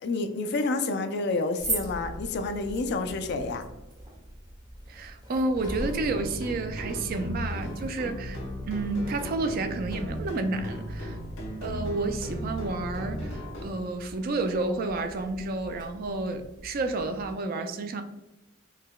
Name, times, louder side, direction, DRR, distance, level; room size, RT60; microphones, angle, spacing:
voice 1, 0.0-3.6, left 3 dB, 55° left, 8 dB, 0.3 m, -29 dB
sound 1, 1.6-17.3, right 1 dB, 20° right, 1.0 m, -42 dB
voice 2, 4.9-8.4 8.7-11.2 11.6-18.0, right 3 dB, 45° right, 6 dB, 0.3 m, -30 dB
sound 2, 5.5-13.7, equal, 80° left, 1.0 m, -36 dB
4.7 x 2.1 x 2.2 m, 1.0 s
head